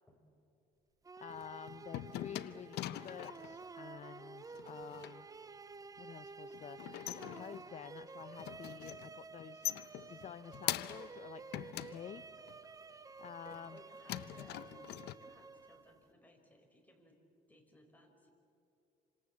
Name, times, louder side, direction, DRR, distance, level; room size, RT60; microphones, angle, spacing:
sound 1, 1.0-16.1, right 4 dB, 20° right, 0.6 m, -52 dB
voice 1, 1.2-5.3 6.0-12.2 13.2-13.8, left 9 dB, 45° left, 12 dB, 0.7 m, -50 dB
sound 2, 1.3-3.6 4.5-5.2 6.5-7.9 8.2-9.1 9.4-11.2 11.5-12.6 13.2-13.8 14.1-15.1, left 14 dB, 75° left, 0.8 m, -43 dB
voice 2, 13.4-14.9 15.2-17.2 17.5-18.3, left 1 dB, 10° left, 2 dB, 5.3 m, -63 dB
28.0 x 26.0 x 7.7 m, 2.7 s
cardioid pair, 110°, 17 cm